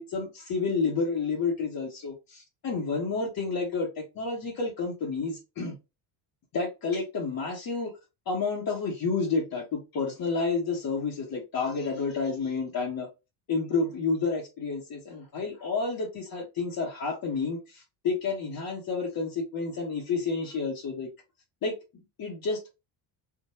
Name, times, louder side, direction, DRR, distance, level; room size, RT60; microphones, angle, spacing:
voice 1, 0.0-5.8 6.5-7.9 8.3-13.1 13.5-21.1 21.6-21.7 22.2-22.6, left 4 dB, 45° left, 1.3 m, -30 dB
3.7 x 2.6 x 2.9 m
cardioid pair, 115°, 47 cm